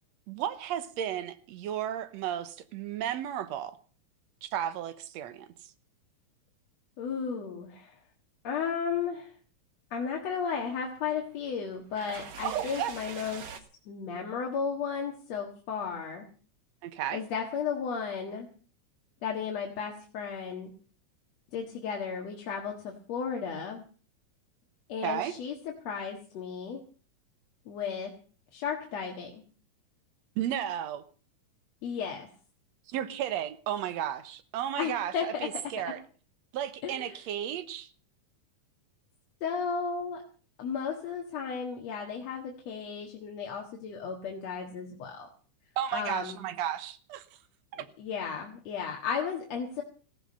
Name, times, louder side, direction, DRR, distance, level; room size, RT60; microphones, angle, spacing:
voice 1, 0.3-3.8 4.4-5.5 12.4-12.9 16.8-17.2 25.0-25.4 30.4-31.0 32.9-36.0 36.5-37.9 45.8-47.3 47.7-47.8, right 10 dB, 70° right, 12 dB, 2.1 m, -33 dB
voice 2, 7.0-7.9 8.4-9.3 9.9-13.4 13.9-16.3 17.1-18.5 19.2-20.7 21.5-23.8 24.9-25.5 25.8-26.8 27.7-28.1 28.5-29.4 31.8-32.3 34.8-35.5 36.8-37.2 39.4-40.2 40.6-45.3 45.9-46.4 48.0-49.8, left 6 dB, 65° left, 1 dB, 2.8 m, -34 dB
sound 1, 10.5-13.6, right 6 dB, 45° right, 1.5 m, -45 dB
16.0 x 14.0 x 5.5 m, 0.41 s
omnidirectional pair, 3.4 m